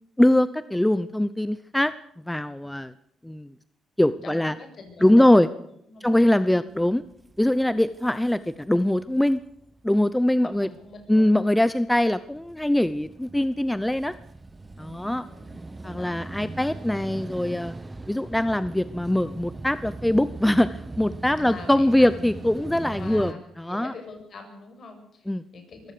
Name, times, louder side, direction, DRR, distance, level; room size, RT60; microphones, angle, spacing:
voice 1, 0.2-1.9 2.3-2.9 3.2-3.5 4.0-4.5 5.0-5.5 6.0-7.0 7.4-9.4 9.8-10.7 11.1-14.1 14.8-15.2 15.8-17.8 18.1-23.3 23.6-23.9 25.3-25.4, left 1 dB, 5° left, 15 dB, 0.7 m, -22 dB
voice 2, 4.2-5.3 5.9-6.7 10.4-11.3 14.8-16.2 21.4-22.2 22.9-25.9, left 4 dB, 50° left, 5 dB, 6.9 m, -44 dB
sound 1, 6.7-23.3, right 2 dB, 20° right, 1.2 m, -41 dB
23.5 x 16.5 x 6.8 m, 0.75 s
cardioid pair, 90°, 0 cm